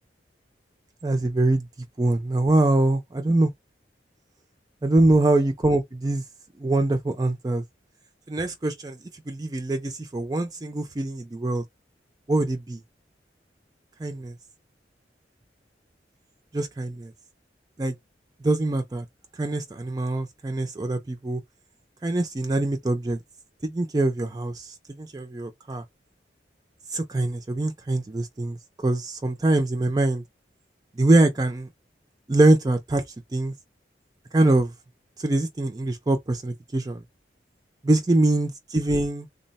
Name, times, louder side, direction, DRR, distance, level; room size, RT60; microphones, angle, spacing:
voice 1, 1.0-1.7 2.0-3.5 4.8-6.2 6.6-7.6 8.3-9.0 9.3-11.6 12.3-12.8 14.0-14.3 16.5-17.1 17.8-18.0 18.4-19.0 19.4-21.4 22.0-23.2 23.6-25.8 26.9-30.2 31.0-31.7 32.3-33.0 33.3-33.5 34.3-34.7 35.2-37.0 37.8-39.3, right 2 dB, 20° right, 0.4 m, -23 dB
3.7 x 2.0 x 4.0 m
head